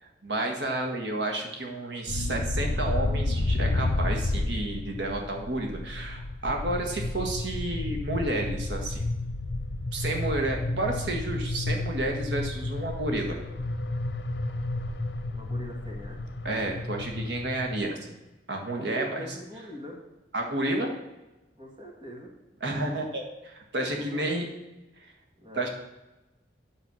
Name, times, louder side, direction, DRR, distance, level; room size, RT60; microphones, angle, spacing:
voice 1, 0.0-9.1 9.9-13.4 16.4-18.2 18.5-19.2 20.3-20.9 22.6-24.5 25.5-25.7, right 2 dB, 80° right, 2 dB, 1.6 m, -31 dB
sound 1, 2.1-17.9, left 2 dB, 80° left, 0.8 m, -31 dB
voice 2, 15.3-16.2 18.7-20.0 21.6-22.3 23.9-24.4 25.4-25.7, equal, 30° right, 0 dB, 1.8 m, -42 dB
9.2 x 6.4 x 6.1 m, 1.0 s
head